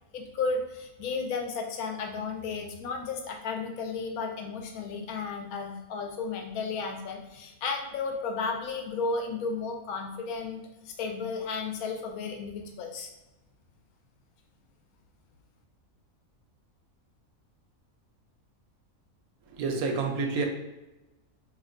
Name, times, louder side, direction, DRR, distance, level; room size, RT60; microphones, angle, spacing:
voice 1, 0.1-13.1, left 4 dB, 85° left, 3 dB, 1.0 m, -33 dB
voice 2, 19.5-20.5, right 4 dB, 80° right, 3 dB, 1.0 m, -29 dB
2.7 x 2.2 x 3.7 m, 1.0 s
omnidirectional pair, 1.5 m